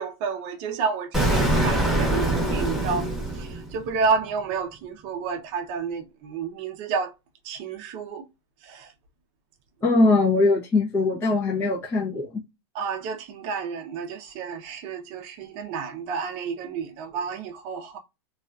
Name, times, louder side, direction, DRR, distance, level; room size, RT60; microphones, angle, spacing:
voice 1, 0.0-3.1 3.4-7.1 7.4-8.2 8.6-8.9 12.7-18.0, right 5 dB, 40° right, 0.6 m, -30 dB
Explosion, 1.1-4.0, right 1 dB, 5° right, 1.1 m, -24 dB
voice 2, 9.8-12.4, left 3 dB, 15° left, 0.6 m, -21 dB
2.4 x 2.3 x 2.2 m
supercardioid pair, 145°, 14 cm